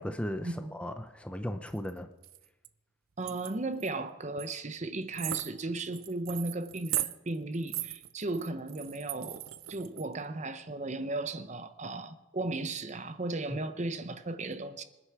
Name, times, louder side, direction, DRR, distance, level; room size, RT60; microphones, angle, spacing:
voice 1, 0.0-2.1 13.5-13.6, equal, 5° left, 0.6 m, -36 dB
sound 1, 1.7-1.9 2.2-2.7 3.2-3.9 4.4-4.5 4.8-4.9 5.1-10.1, right 14 dB, 80° right, 0.6 m, -38 dB
voice 2, 3.2-14.8, right 2 dB, 35° right, 0.8 m, -36 dB
25.5 x 9.8 x 4.8 m
head